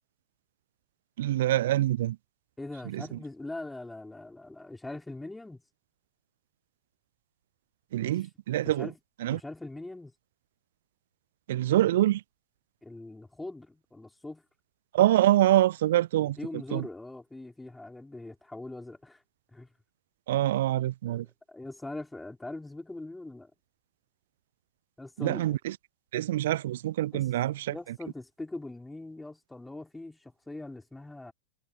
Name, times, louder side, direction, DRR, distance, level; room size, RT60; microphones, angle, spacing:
voice 1, 1.2-2.2 2.9-3.0 7.9-8.9 9.2-9.4 11.5-12.2 14.9-16.4 16.7-16.9 20.3-21.3 25.2-25.7 26.1-27.7, right 14 dB, 55° right, 0.4 m, -25 dB
voice 2, 2.6-5.6 8.0-8.1 8.6-9.0 9.3-10.1 12.8-14.4 16.2-19.2 19.5-19.7 21.1-23.5 25.0-25.6 27.1-27.2 27.7-31.3, left 2 dB, 5° left, 5.2 m, -42 dB
figure-of-eight pair, 90°, 0 cm